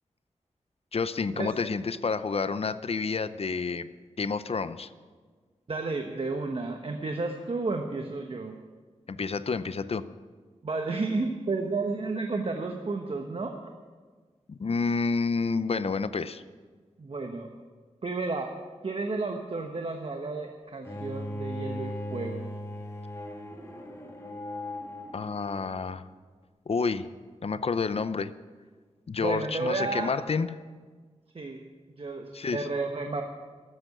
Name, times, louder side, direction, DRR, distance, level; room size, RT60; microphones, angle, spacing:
voice 1, 0.9-3.9 4.2-4.9 9.1-10.0 14.5-16.4 25.1-26.0 26.7-27.1 27.4-28.3 29.1-30.5 32.3-32.7, left 4 dB, 55° left, 13 dB, 0.6 m, -29 dB
voice 2, 5.7-8.6 10.6-13.7 17.0-17.5 18.0-22.5 29.2-30.1 31.3-31.6 31.9-33.2, right 3 dB, 50° right, 3 dB, 1.1 m, -32 dB
Bowed string instrument, 20.8-25.9, left 1 dB, 20° left, 1.9 m, -38 dB
13.5 x 7.9 x 9.9 m, 1.5 s
wide cardioid pair, 85°, 12 cm